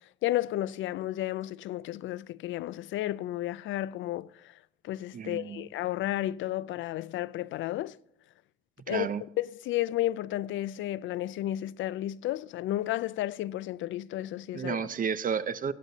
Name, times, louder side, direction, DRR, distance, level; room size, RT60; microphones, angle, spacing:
voice 1, 0.2-4.5 4.8-8.0 8.9-9.1 9.4-14.8, left 14 dB, 75° left, 0.4 m, -32 dB
voice 2, 5.1-5.6 8.9-9.2 14.5-15.7, right 7 dB, 45° right, 0.7 m, -31 dB
16.5 x 8.2 x 4.0 m
cardioid pair, 90°, 20 cm